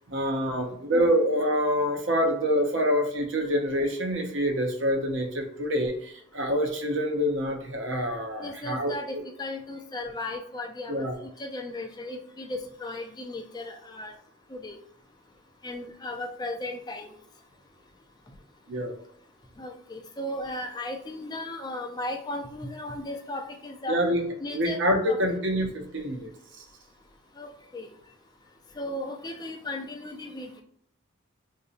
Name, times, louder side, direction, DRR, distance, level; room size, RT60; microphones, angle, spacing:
voice 1, 0.1-9.2 10.9-11.2 18.7-18.9 23.9-24.2 24.5-26.6, equal, 55° right, 4 dB, 0.7 m, -26 dB
voice 2, 8.4-11.0 11.4-14.1 14.5-14.8 15.6-17.2 19.6-24.0 24.4-24.8 25.1-25.2 27.4-27.9 28.8-30.6, left 1 dB, 20° left, 4 dB, 0.4 m, -36 dB
3.8 x 2.7 x 2.5 m, 0.67 s
head